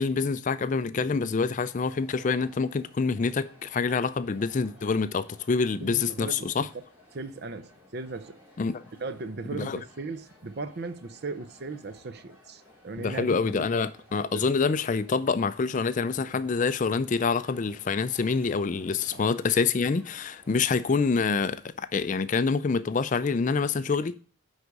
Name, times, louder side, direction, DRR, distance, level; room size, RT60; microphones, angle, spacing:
voice 1, 0.0-6.7 8.6-8.8 9.5-9.8 13.0-24.1, left 4 dB, 35° left, 0.4 m, -26 dB
sound 1, 1.7-21.0, left 1 dB, 10° right, 2.9 m, -57 dB
voice 2, 5.8-6.7 7.1-8.4 9.0-13.7 14.3-14.5 19.1-19.2, right 3 dB, 50° right, 0.6 m, -37 dB
9.7 x 4.0 x 4.7 m
head